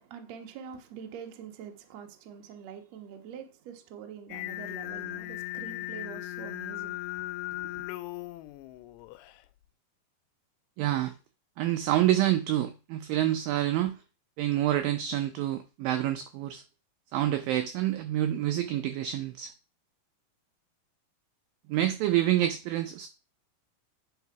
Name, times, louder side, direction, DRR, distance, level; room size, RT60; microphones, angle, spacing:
voice 1, 0.0-7.0 7.5-7.7, right 8 dB, 65° right, 1.7 m, -45 dB
Singing, 4.3-9.4, left 18 dB, 90° left, 2.7 m, -38 dB
voice 2, 10.8-11.1 11.6-14.0 14.4-16.6 17.1-19.5 21.7-23.1, right 13 dB, 80° right, 2.1 m, -27 dB
9.8 x 4.8 x 4.6 m
omnidirectional pair, 4.7 m